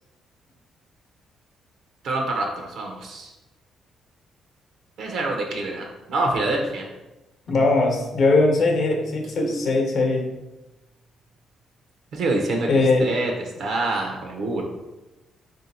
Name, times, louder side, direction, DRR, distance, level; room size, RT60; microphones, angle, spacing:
voice 1, 2.0-3.3 5.0-6.9 9.4-9.6 12.1-12.7 13.0-13.3 13.6-14.6, right 2 dB, 75° right, 1 dB, 0.7 m, -26 dB
voice 2, 7.5-10.2 12.7-13.1, left 3 dB, 60° left, 2 dB, 0.8 m, -20 dB
Keyboard (musical), 7.5-10.6, right 1 dB, 5° right, 0.3 m, -42 dB
3.3 x 2.7 x 4.1 m, 1.0 s
cardioid pair, 90°, 0 cm